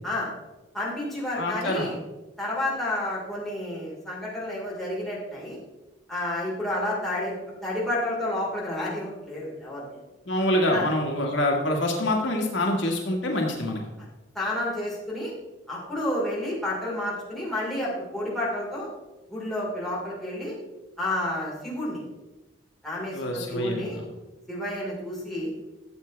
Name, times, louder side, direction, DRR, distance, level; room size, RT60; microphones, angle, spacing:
voice 1, 0.7-2.0 2.4-5.6 6.1-7.4 7.6-10.0 10.7-10.9 14.0-14.1 14.3-15.3 15.7-18.9 19.3-20.6 21.0-22.0 22.8-24.0 24.5-25.5, left 1 dB, ahead, -7 dB, 4.2 m, -30 dB
voice 2, 1.4-1.9 10.3-13.8 23.1-24.1, left 1 dB, 75° left, 0 dB, 1.8 m, -26 dB
13.5 x 8.1 x 3.3 m, 1.1 s
head